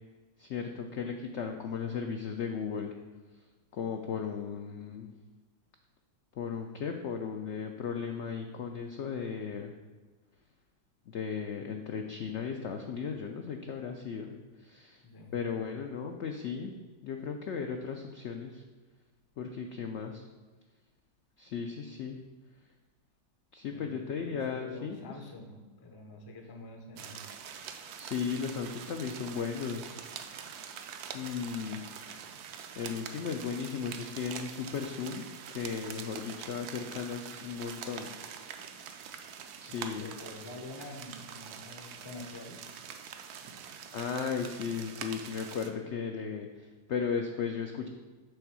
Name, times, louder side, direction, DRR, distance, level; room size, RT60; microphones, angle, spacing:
voice 1, 0.4-2.9 3.7-5.1 6.4-9.7 11.1-14.4 14.6-15.0 15.3-16.7 17.0-18.6 19.4-20.2 21.4-22.2 23.5-25.0 28.0-29.9 31.1-31.8 32.2-32.3 32.8-38.1 38.5-38.6 39.6-40.1 43.9-47.9, left 6 dB, 75° left, 4 dB, 0.6 m, -36 dB
voice 2, 15.0-15.3 23.7-27.2 30.4-30.6 39.7-42.7, left 2 dB, 30° left, 3 dB, 0.4 m, -47 dB
sound 1, 27.0-45.7, right 7 dB, 75° right, 1.1 m, -45 dB
6.7 x 3.6 x 6.1 m, 1.3 s
omnidirectional pair, 1.7 m